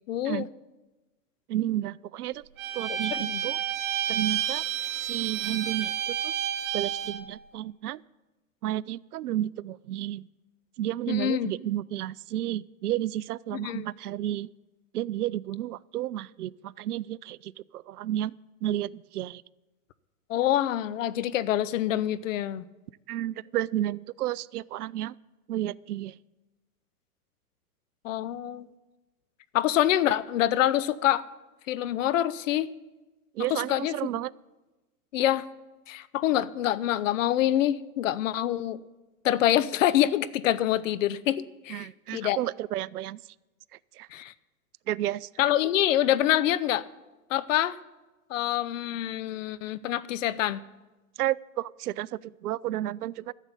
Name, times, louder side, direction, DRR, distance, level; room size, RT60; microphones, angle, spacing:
voice 1, 0.1-0.5 3.1-3.4 11.1-11.5 13.5-13.8 20.3-22.6 28.0-28.7 29.5-31.2 31.7-32.7 33.5-33.9 35.1-35.4 35.9-38.8 39.2-42.4 44.1-44.3 45.4-46.9 47.3-47.8 48.3-50.6, left 12 dB, 60° left, 17 dB, 0.7 m, -26 dB
voice 2, 1.5-2.4 2.7-3.6 4.1-4.6 5.0-6.3 6.7-8.0 8.6-10.3 10.8-14.5 14.9-18.3 18.6-19.4 23.1-25.2 25.5-26.2 33.3-34.3 41.7-43.2 43.9-44.1 44.9-45.3 51.2-53.3, right 13 dB, 80° right, 23 dB, 0.5 m, -32 dB
Bowed string instrument, 2.6-7.2, right 9 dB, 55° right, 1.6 m, -30 dB
13.5 x 7.4 x 8.2 m, 1.1 s
hypercardioid pair, 130°, 45 cm